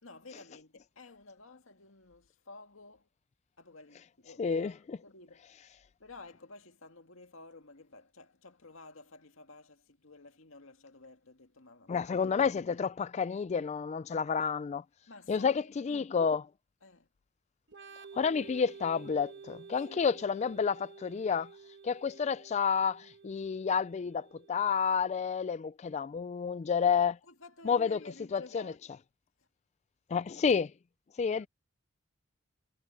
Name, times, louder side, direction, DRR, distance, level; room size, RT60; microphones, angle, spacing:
voice 1, 0.0-3.1 3.6-4.7 5.0-5.5 6.0-12.0 15.1-15.7 16.8-17.1 19.7-20.0 27.2-28.8 31.3-31.5, left 3 dB, 85° left, 2.1 m, -52 dB
voice 2, 4.4-5.0 11.9-14.8 15.3-16.5 18.1-21.5 21.8-27.2 27.7-28.0 28.3-28.7 30.1-30.7 31.2-31.5, left 6 dB, 35° left, 0.3 m, -30 dB
Organ, 17.7-25.2, right 5 dB, 60° right, 1.3 m, -51 dB
head